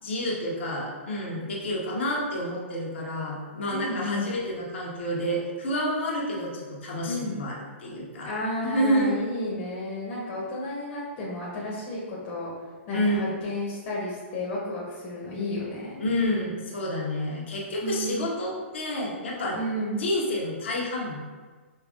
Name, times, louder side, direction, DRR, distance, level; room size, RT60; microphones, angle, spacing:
voice 1, 0.0-8.3 8.6-9.2 12.9-13.3 16.0-19.6 20.0-21.2, equal, 65° left, -4 dB, 1.3 m, -29 dB
voice 2, 3.7-4.3 7.0-7.3 8.2-12.5 12.9-16.0 17.8-18.2 19.5-20.0, left 1 dB, 40° left, -6 dB, 1.1 m, -32 dB
5.4 x 3.4 x 2.4 m, 1.4 s
figure-of-eight pair, 115°, 7 cm